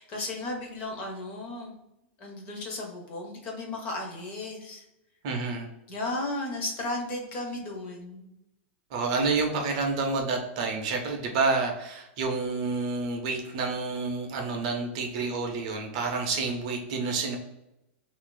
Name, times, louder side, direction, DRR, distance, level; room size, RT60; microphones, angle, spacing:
voice 1, 0.0-1.8 2.2-4.8 5.9-8.3, left 2 dB, 20° left, 1 dB, 0.5 m, -35 dB
voice 2, 5.2-5.7 8.9-17.4, right 4 dB, 35° right, 2 dB, 0.5 m, -29 dB
2.6 x 2.4 x 3.7 m, 0.90 s
supercardioid pair, 180°, 6 cm